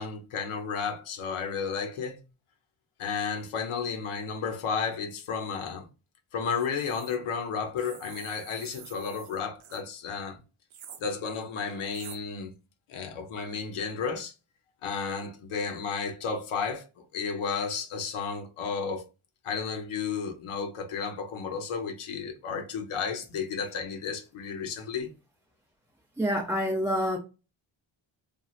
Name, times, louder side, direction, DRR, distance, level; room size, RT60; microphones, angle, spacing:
voice 1, 0.0-2.2 3.0-5.9 6.3-10.4 11.0-12.5 12.9-14.3 14.8-19.0 19.4-25.1, left 5 dB, 85° left, 0.8 m, -33 dB
sound 1, 6.5-7.2 7.8-9.8 10.7-11.0 11.9-12.2, right 8 dB, 70° right, 0.7 m, -47 dB
voice 2, 26.2-27.2, equal, 5° right, 0.4 m, -27 dB
3.0 x 2.4 x 2.4 m
cardioid pair, 105°, 49 cm